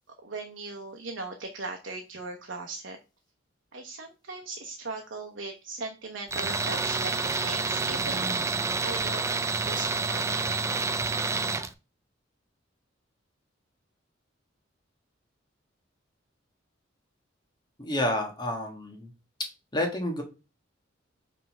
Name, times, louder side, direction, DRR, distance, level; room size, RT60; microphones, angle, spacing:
voice 1, 0.2-3.0 3.7-8.4 8.8-9.3 9.6-11.0, right 3 dB, 70° right, 3 dB, 1.0 m, -39 dB
Tools, 6.3-11.7, right 4 dB, 15° right, 0.4 m, -28 dB
voice 2, 17.8-19.1 19.7-20.2, left 1 dB, 25° left, 2 dB, 1.6 m, -29 dB
5.6 x 3.6 x 5.6 m, 0.30 s
head